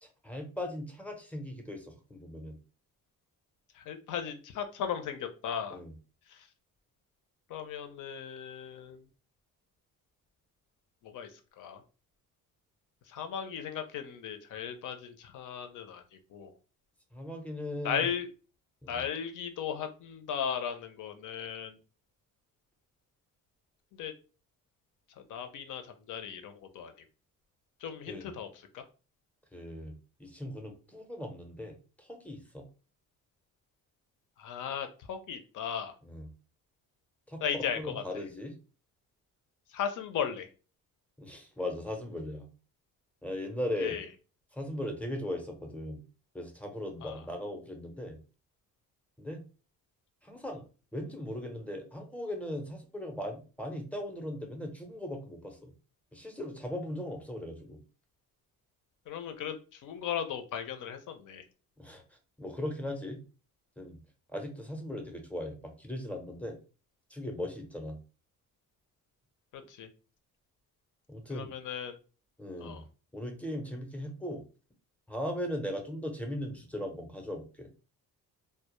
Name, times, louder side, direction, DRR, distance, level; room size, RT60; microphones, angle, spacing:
voice 1, 0.0-2.6 5.7-5.9 17.1-18.1 18.8-19.0 28.1-28.3 29.5-29.9 30.2-32.7 36.0-36.3 37.3-37.4 37.7-38.6 41.2-42.5 43.2-44.0 44.5-46.0 46.3-48.2 49.2-49.4 50.2-50.6 50.9-55.7 56.1-57.8 61.8-63.2 63.8-64.0 64.3-66.6 67.1-68.0 71.1-71.5 72.4-72.8 73.1-74.4 75.1-77.7, left 1 dB, 5° left, 3 dB, 0.6 m, -38 dB
voice 2, 3.7-5.8 6.3-6.5 7.5-9.0 11.0-11.3 11.6-11.8 13.1-16.5 17.8-18.3 18.9-21.8 23.9-24.1 25.2-26.9 27.8-28.5 28.7-28.8 34.4-35.9 37.4-38.2 39.7-40.5 43.8-44.0 47.0-47.2 59.1-61.4 69.5-69.9 71.3-72.0 72.6-72.8, left 8 dB, 60° left, 7 dB, 0.5 m, -36 dB
2.1 x 2.0 x 2.9 m, 0.35 s
cardioid pair, 90°, 35 cm